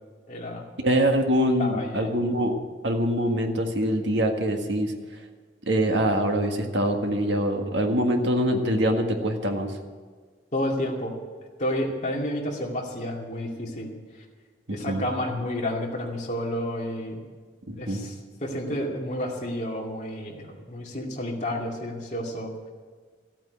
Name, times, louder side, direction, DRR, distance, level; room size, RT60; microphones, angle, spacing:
voice 1, 0.3-0.7 1.6-2.1 10.5-11.1 11.6-13.9 14.7-17.2 17.8-18.1 18.4-22.7, left 1 dB, 40° left, -1 dB, 2.3 m, -30 dB
voice 2, 0.8-2.6 2.8-4.9 5.7-9.7 14.7-15.0 17.7-18.0, equal, 70° right, 3 dB, 1.7 m, -24 dB
13.5 x 9.0 x 8.2 m, 1.6 s
head